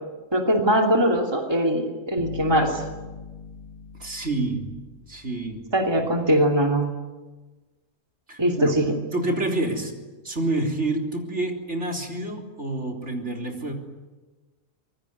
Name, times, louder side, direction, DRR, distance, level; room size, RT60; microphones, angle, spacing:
voice 1, 0.3-2.8 5.7-6.9 8.4-8.9, right 1 dB, 15° right, 2 dB, 2.7 m, -21 dB
sound 1, 2.2-5.6, left 4 dB, 85° left, 5.1 m, -39 dB
voice 2, 3.9-4.7 5.1-5.6 8.3-8.8 9.1-9.9 10.2-13.7, right 2 dB, 55° right, 2 dB, 4.1 m, -28 dB
25.5 x 22.5 x 9.7 m, 1.2 s
omnidirectional pair, 1.5 m